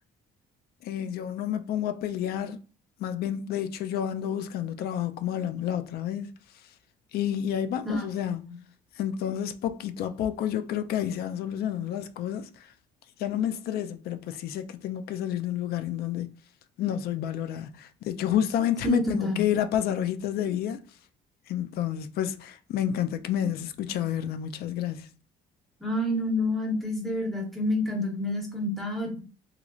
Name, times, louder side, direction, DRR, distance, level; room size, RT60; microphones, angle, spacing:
voice 1, 0.8-2.6 3.0-6.3 7.1-8.4 9.0-12.5 13.2-16.3 16.8-20.8 21.5-25.1, left 10 dB, 65° left, 0.4 m, -29 dB
voice 2, 18.8-19.4 25.8-29.2, left 1 dB, ahead, 1.0 m, -28 dB
3.0 x 2.5 x 2.4 m
cardioid pair, 110°, 17 cm